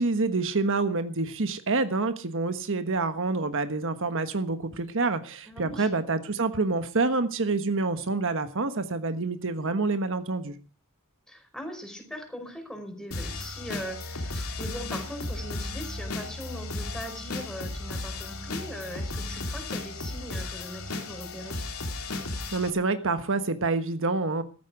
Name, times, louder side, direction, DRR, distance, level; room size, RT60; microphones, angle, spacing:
voice 1, 0.0-10.5 22.5-24.4, right 3 dB, 65° right, 9 dB, 1.3 m, -27 dB
voice 2, 5.5-5.9 11.3-21.7, equal, 5° left, 5 dB, 5.0 m, -40 dB
sound 1, 13.1-22.7, left 2 dB, 75° left, 3.6 m, -35 dB
15.0 x 14.5 x 4.9 m, 0.39 s
head